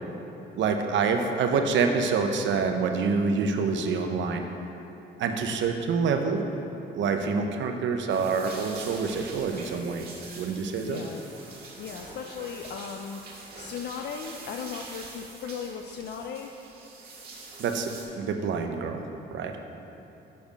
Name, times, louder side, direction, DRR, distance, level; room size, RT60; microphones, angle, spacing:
voice 1, 0.6-4.4 5.2-6.4 6.9-10.1 10.4-11.0 17.6-19.0 19.3-19.6, right 5 dB, 70° right, 5 dB, 0.7 m, -26 dB
sound 1, 8.1-18.0, right 3 dB, 50° right, 1.7 m, -45 dB
voice 2, 10.8-11.2 11.8-16.6, left 6 dB, 60° left, 3 dB, 0.4 m, -37 dB
6.7 x 5.1 x 5.1 m, 2.9 s
cardioid pair, 90°, 20 cm